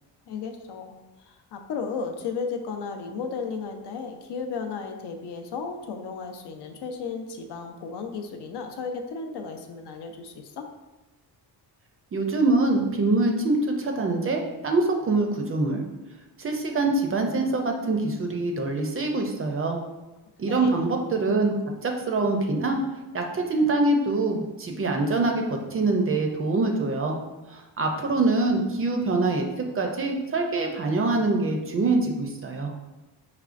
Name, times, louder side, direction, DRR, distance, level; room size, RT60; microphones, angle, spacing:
voice 1, 0.3-0.9 1.2-10.7 20.5-20.8, left 5 dB, 80° left, 5 dB, 0.6 m, -34 dB
voice 2, 12.1-15.8 16.4-19.8 20.4-21.5 21.8-22.8 23.1-27.2 27.5-29.4 29.8-32.7, right 2 dB, 35° right, 3 dB, 0.4 m, -24 dB
4.9 x 3.2 x 2.5 m, 1.1 s
wide cardioid pair, 155°, 40 cm